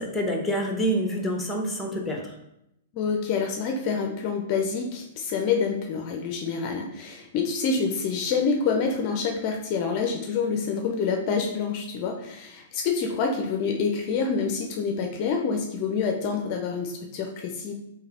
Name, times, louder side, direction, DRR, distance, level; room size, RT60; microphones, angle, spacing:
voice 1, 0.0-2.3, equal, 5° left, 2 dB, 0.7 m, -27 dB
voice 2, 2.9-17.7, left 5 dB, 45° left, 3 dB, 0.4 m, -27 dB
3.2 x 2.7 x 3.6 m, 0.82 s
hypercardioid pair, 125°, 0 cm